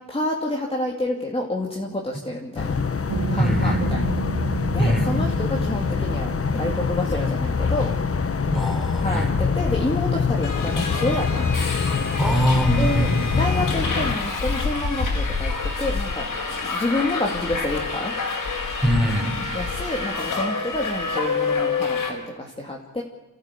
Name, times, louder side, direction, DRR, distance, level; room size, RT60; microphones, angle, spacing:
voice 1, 0.1-2.7 3.3-4.1 4.7-7.9 9.0-11.5 12.8-16.3 16.6-18.1 19.5-23.0, left 1 dB, 15° left, -1 dB, 2.8 m, -28 dB
sound 1, 2.6-14.2, left 5 dB, 40° left, 1.3 m, -24 dB
sound 2, 3.1-14.5, right 6 dB, 70° right, 2.8 m, -35 dB
voice 2, 3.4-3.8 4.8-5.1 8.5-9.3 12.2-13.3 18.8-19.4, equal, ahead, 3 dB, 4.8 m, -22 dB
Subway metro underground, 10.4-22.1, left 4 dB, 60° left, 4.9 m, -27 dB
29.5 x 14.0 x 8.5 m, 1.1 s
wide cardioid pair, 100°, 36 cm